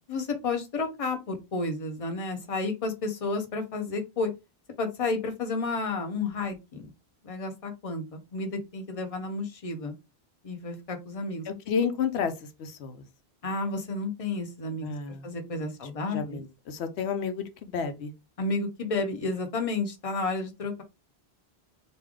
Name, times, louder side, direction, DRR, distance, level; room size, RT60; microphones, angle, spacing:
voice 1, 0.1-4.3 4.8-6.9 7.2-9.9 10.4-11.5 13.4-14.9 15.2-16.4 18.4-20.8, left 3 dB, 35° left, 0.8 m, -31 dB
voice 2, 11.5-12.3 12.6-13.0 14.8-15.3 16.1-18.1, left 6 dB, 90° left, 0.9 m, -31 dB
3.2 x 2.5 x 3.6 m
omnidirectional pair, 1.1 m